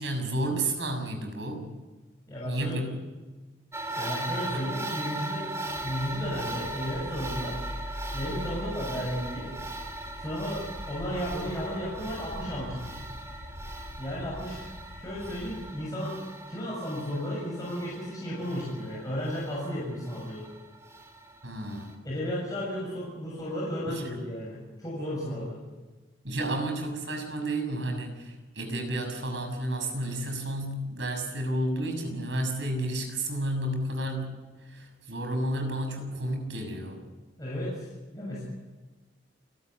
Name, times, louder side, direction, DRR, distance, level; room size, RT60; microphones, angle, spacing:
voice 1, 0.0-1.7 2.4-2.9 4.5-4.6 21.4-21.9 23.9-24.0 26.2-34.4 34.6-37.0, right 1 dB, 70° right, 4 dB, 6.6 m, -31 dB
voice 2, 2.3-2.8 4.0-7.6 8.1-9.5 10.2-12.9 14.0-14.7 15.0-16.2 16.5-20.5 22.0-25.6 37.4-37.9 38.1-38.4, equal, 20° left, -5 dB, 7.1 m, -34 dB
sound 1, 3.7-21.9, right 2 dB, 15° right, 2.9 m, -39 dB
sound 2, 5.7-15.7, left 1 dB, 80° left, 5.3 m, -42 dB
29.5 x 13.5 x 9.6 m, 1.2 s
head